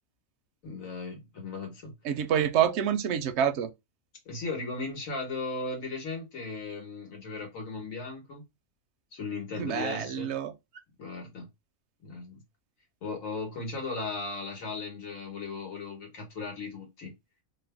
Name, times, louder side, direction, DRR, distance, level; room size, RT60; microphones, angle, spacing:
voice 1, 0.6-1.9 4.3-8.4 9.1-10.3 11.0-11.5 12.0-12.4 13.0-17.1, left 3 dB, 75° left, 1.7 m, -37 dB
voice 2, 2.0-3.7 9.6-10.5, right 9 dB, 65° right, 0.8 m, -27 dB
3.3 x 2.1 x 3.3 m
omnidirectional pair, 1.4 m